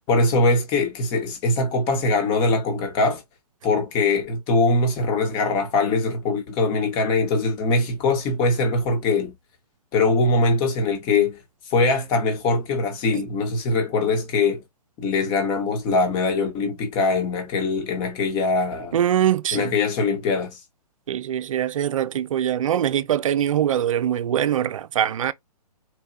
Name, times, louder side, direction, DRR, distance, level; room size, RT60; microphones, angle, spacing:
voice 1, 0.1-3.2 3.6-9.3 9.9-11.4 11.7-14.6 15.0-19.0 19.5-20.5, left 3 dB, 25° left, 1.5 m, -22 dB
voice 2, 18.9-19.7 21.1-25.3, right 10 dB, 55° right, 0.6 m, -23 dB
4.6 x 3.3 x 2.8 m
figure-of-eight pair, 130°, 21 cm